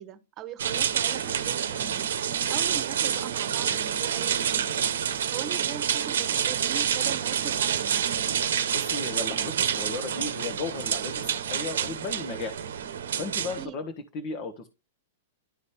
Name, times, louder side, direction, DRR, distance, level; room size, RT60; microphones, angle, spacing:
voice 1, 0.0-2.1 2.5-4.9 5.3-8.2 13.6-13.8, right 10 dB, 35° right, 1.0 m, -41 dB
sound 1, 0.6-13.7, right 8 dB, 70° right, 0.8 m, -28 dB
voice 2, 8.7-12.6 13.2-14.7, left 4 dB, 45° left, 1.2 m, -35 dB
12.0 x 4.1 x 3.4 m
hypercardioid pair, 110°, 0 cm